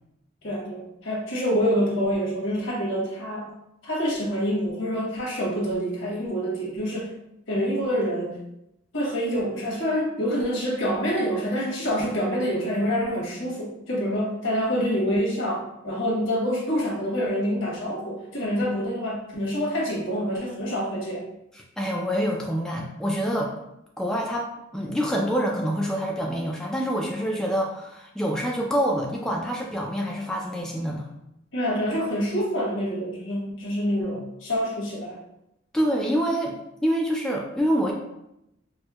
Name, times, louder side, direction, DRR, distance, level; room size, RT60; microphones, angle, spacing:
voice 1, 0.4-3.5 3.8-7.1 7.5-8.4 8.9-21.2 31.5-35.2, equal, 80° left, -4 dB, 1.1 m, -26 dB
voice 2, 21.5-23.5 24.0-31.1 35.7-37.9, equal, 5° left, -1 dB, 0.3 m, -26 dB
4.4 x 2.1 x 2.3 m, 0.83 s
head